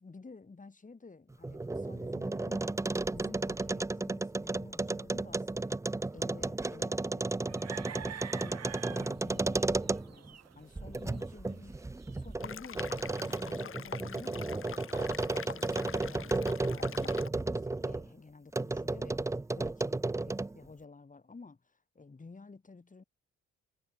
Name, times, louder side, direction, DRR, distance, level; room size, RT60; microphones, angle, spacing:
voice 1, 0.0-5.8 6.1-11.8 12.1-14.6 15.1-19.2 19.5-23.0, left 4 dB, 25° left, 5.9 m, -52 dB
sound 1, 1.3-10.3 10.8-18.1 18.5-20.6, right 2 dB, 10° right, 0.6 m, -33 dB
sound 2, 7.4-12.3, right 9 dB, 60° right, 4.2 m, -47 dB
sound 3, 12.4-17.3, left 8 dB, 45° left, 1.5 m, -45 dB
cardioid pair, 90°, 30 cm